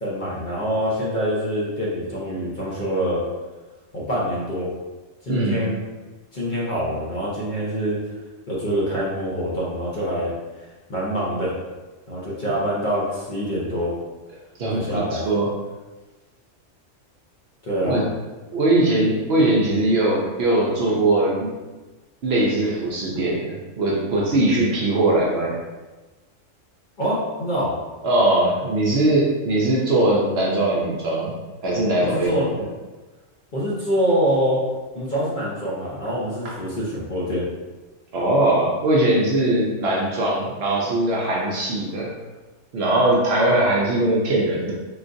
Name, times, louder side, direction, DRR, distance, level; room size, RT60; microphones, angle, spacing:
voice 1, 0.0-3.2 3.9-4.7 5.2-5.8 6.3-8.0 8.5-10.3 10.9-11.6 12.1-14.0 14.7-15.2 17.6-18.0 27.0-27.8 32.1-32.6 33.5-34.6 34.9-37.4, equal, 45° left, -7 dB, 0.7 m, -25 dB
voice 2, 5.3-5.7 14.6-15.5 17.8-18.0 18.5-21.5 22.2-25.6 28.0-31.3 31.6-32.3 36.4-36.5 38.1-42.1 42.7-44.7, right 1 dB, 60° right, -3 dB, 0.8 m, -20 dB
3.7 x 2.4 x 2.5 m, 1.2 s
omnidirectional pair, 1.3 m